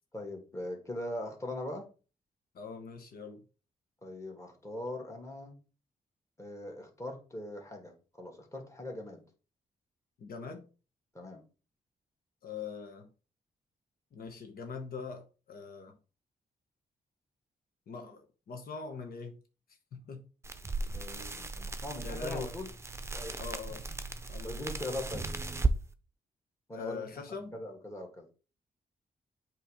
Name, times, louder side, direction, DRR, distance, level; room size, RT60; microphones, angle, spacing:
voice 1, 0.1-1.9 4.0-5.6 6.4-9.2 11.1-11.4 20.9-22.7 23.1-23.4 24.4-25.3 26.7-28.3, left 1 dB, 20° left, 2.0 m, -41 dB
voice 2, 2.5-3.4 10.2-10.7 12.4-13.1 14.1-16.0 17.9-19.4 19.9-20.3 21.3-21.6 22.0-22.6 23.4-23.8 24.3-24.7 26.7-27.6, left 5 dB, 75° left, 1.0 m, -42 dB
sound 1, 20.4-25.8, right 3 dB, 15° right, 0.7 m, -36 dB
7.9 x 3.1 x 5.0 m
cardioid pair, 90°, 16 cm